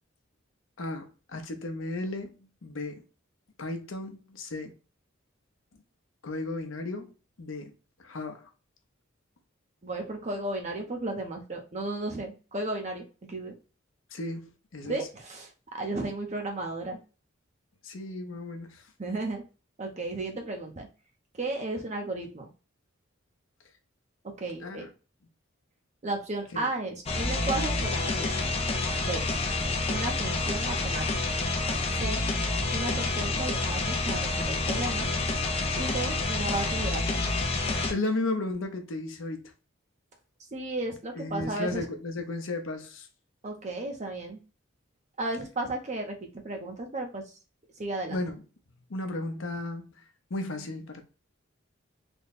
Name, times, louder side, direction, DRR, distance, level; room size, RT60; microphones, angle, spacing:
voice 1, 0.8-2.3 2.6-3.0 3.6-4.7 6.2-7.1 7.4-7.7 8.0-8.5 14.1-15.0 17.8-18.8 24.6-24.9 26.5-26.7 37.9-39.5 41.1-43.1 48.1-48.4 48.9-49.9 50.3-51.1, left 2 dB, 75° left, 0.7 m, -34 dB
voice 2, 9.8-13.5 14.8-17.0 19.0-19.4 19.8-20.9 21.4-22.5 24.4-24.8 26.0-28.3 29.0-29.3 29.9-31.0 31.9-32.2 32.7-35.1 35.7-37.2 40.5-41.9 43.4-44.4 45.2-47.3 47.8-48.2, right 2 dB, 35° right, 0.6 m, -34 dB
sound 1, 27.1-37.9, left 3 dB, 30° left, 0.5 m, -28 dB
3.4 x 2.2 x 4.0 m
head